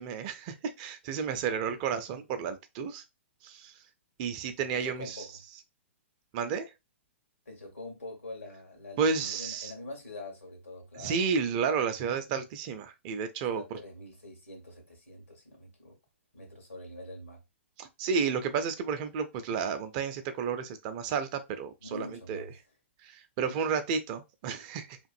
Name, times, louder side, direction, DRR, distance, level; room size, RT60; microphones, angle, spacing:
voice 1, 0.0-3.0 3.4-3.7 4.2-5.3 6.3-6.7 9.0-9.7 11.0-13.8 17.8-22.5 23.0-25.0, right 6 dB, 35° right, 0.5 m, -32 dB
voice 2, 4.7-5.3 7.4-11.2 13.5-16.0 16.3-17.4 21.8-22.5, left 2 dB, 80° left, 1.4 m, -44 dB
2.9 x 2.5 x 2.5 m
figure-of-eight pair, 115°, 7 cm